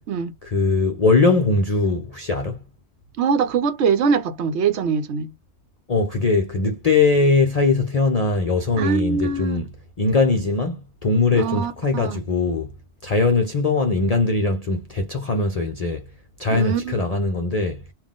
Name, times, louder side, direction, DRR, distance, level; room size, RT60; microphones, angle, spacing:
voice 1, 0.4-2.6 5.9-9.6 10.0-12.7 13.0-16.1 16.4-17.8, left 3 dB, 40° left, 0.7 m, -21 dB
voice 2, 3.2-5.3 8.8-9.6 11.3-12.2 16.5-16.9, right 6 dB, 75° right, 1.0 m, -23 dB
3.6 x 2.5 x 3.7 m
omnidirectional pair, 1.2 m